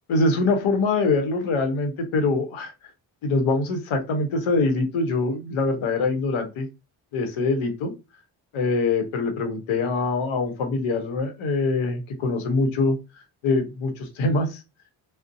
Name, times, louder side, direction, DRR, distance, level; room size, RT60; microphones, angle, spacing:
voice 1, 0.1-2.7 3.2-6.7 7.1-7.9 8.5-13.0 13.4-14.6, left 3 dB, 70° left, 6 dB, 0.8 m, -24 dB
2.5 x 2.0 x 2.5 m, 0.26 s
supercardioid pair, 45°, 49 cm